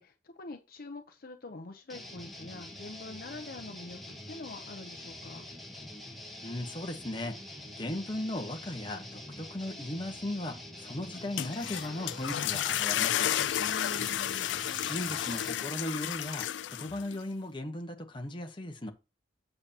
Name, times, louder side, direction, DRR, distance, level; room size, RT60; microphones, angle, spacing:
voice 1, 0.0-5.5 13.6-14.5, left 2 dB, 55° left, 0.7 m, -45 dB
sound 1, 1.9-15.6, left 1 dB, ahead, 1.6 m, -46 dB
voice 2, 6.4-7.4 7.8-13.4 14.9-16.5 16.8-18.9, left 1 dB, 25° left, 1.1 m, -37 dB
sound 2, 11.1-17.2, left 11 dB, 80° left, 0.3 m, -32 dB
7.9 x 6.8 x 2.9 m
head